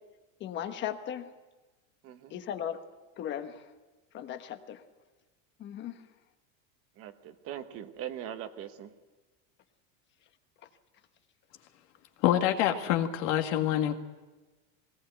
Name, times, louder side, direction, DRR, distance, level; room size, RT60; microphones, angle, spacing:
voice 1, 0.4-1.3 2.3-2.8 3.2-3.6 4.1-4.8 5.6-5.9, left 10 dB, 25° left, 8 dB, 1.2 m, -37 dB
voice 2, 2.0-2.4 7.0-8.9, right 10 dB, 35° right, 9 dB, 1.1 m, -41 dB
voice 3, 12.2-13.9, left 12 dB, 60° left, 5 dB, 2.0 m, -26 dB
20.0 x 18.5 x 7.9 m, 1.2 s
supercardioid pair, 165°, 40 cm